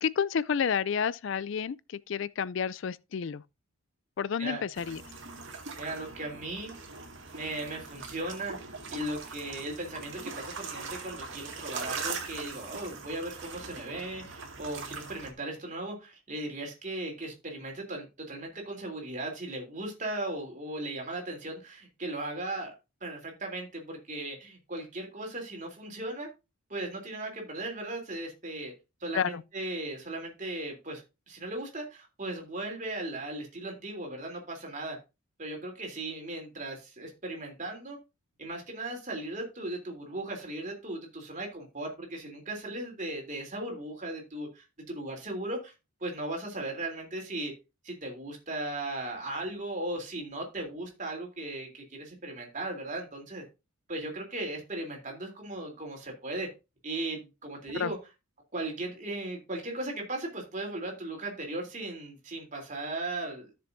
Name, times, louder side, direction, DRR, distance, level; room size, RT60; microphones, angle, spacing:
voice 1, 0.0-3.4 4.2-5.0 29.1-29.4 57.7-57.9, left 7 dB, 55° left, 0.4 m, -30 dB
sound 1, 4.7-15.3, right 4 dB, 55° right, 2.2 m, -41 dB
voice 2, 5.8-6.7 7.3-22.7 23.0-26.3 26.7-28.7 29.0-35.0 35.4-38.0 38.4-45.7 46.0-47.5 47.8-53.4 53.9-56.5 56.8-58.0 58.5-63.5, right 2 dB, 35° right, 3.3 m, -37 dB
13.5 x 6.9 x 2.7 m
head